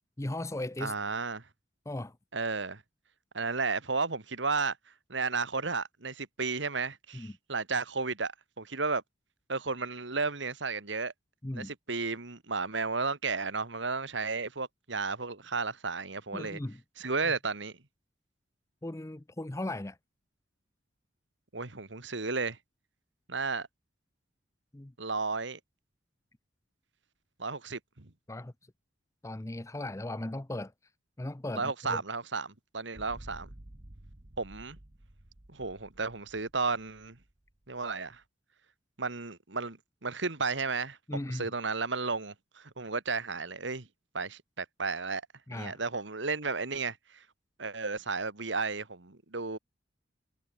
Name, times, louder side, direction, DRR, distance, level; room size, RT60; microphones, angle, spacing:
voice 1, 0.2-0.9 1.9-2.2 7.1-7.3 11.4-11.7 16.3-16.8 17.2-17.3 18.8-20.0 24.7-24.9 28.3-28.5 29.2-30.7 31.2-32.0 41.1-41.5 45.5-45.8, left 1 dB, 15° left, 0.6 m, -37 dB
voice 2, 0.8-1.5 2.3-2.8 3.3-4.8 5.1-9.0 9.5-11.1 11.5-16.6 17.0-17.7 21.5-22.6 23.3-23.7 25.0-25.6 27.4-28.1 31.5-33.5 34.4-34.8 35.5-37.2 37.7-38.2 39.0-41.0 41.3-43.9 44.1-45.2 45.5-47.2 47.6-49.6, right 4 dB, 75° right, 2.1 m, -33 dB
sound 1, 32.9-38.2, right 1 dB, 40° right, 1.5 m, -52 dB
head